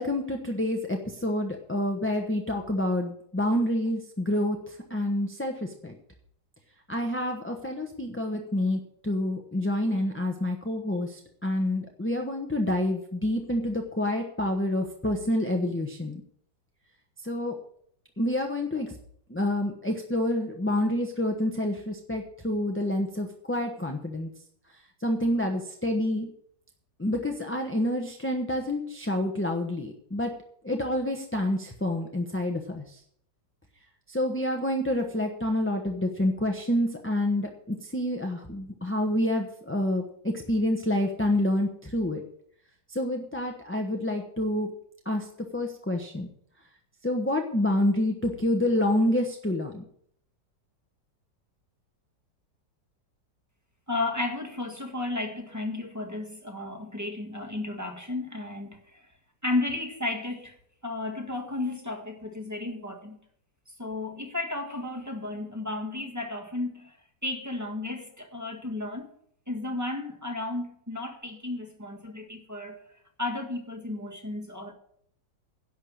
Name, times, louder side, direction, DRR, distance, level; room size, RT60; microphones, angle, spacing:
voice 1, 0.0-4.6 4.9-5.5 5.8-5.9 6.9-16.2 17.2-17.6 18.2-18.9 19.3-24.3 25.0-26.3 27.0-30.3 30.6-32.8 34.1-42.2 42.9-44.7 45.1-45.2 45.5-46.3 47.0-49.8, left 1 dB, 10° left, 0.8 m, -28 dB
voice 2, 53.9-59.1 59.4-60.5 60.8-63.2 63.7-67.0 67.2-69.1 69.5-72.8 73.2-74.7, left 2 dB, 10° right, 1.5 m, -33 dB
11.0 x 6.4 x 8.7 m
omnidirectional pair, 1.9 m